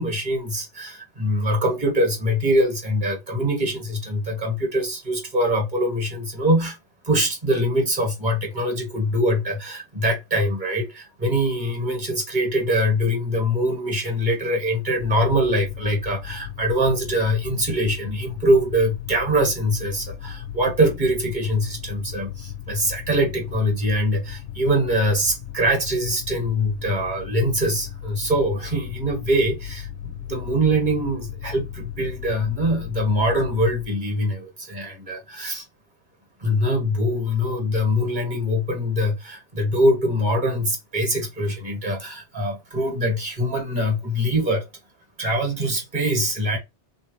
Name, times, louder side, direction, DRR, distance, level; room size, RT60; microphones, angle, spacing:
voice 1, 0.0-6.8 7.0-35.6 36.4-44.6 45.2-46.6, equal, 40° right, 1.6 m, -23 dB
sound 1, 15.0-33.9, left 10 dB, 85° left, 0.9 m, -36 dB
3.5 x 3.2 x 3.3 m
omnidirectional pair, 1.2 m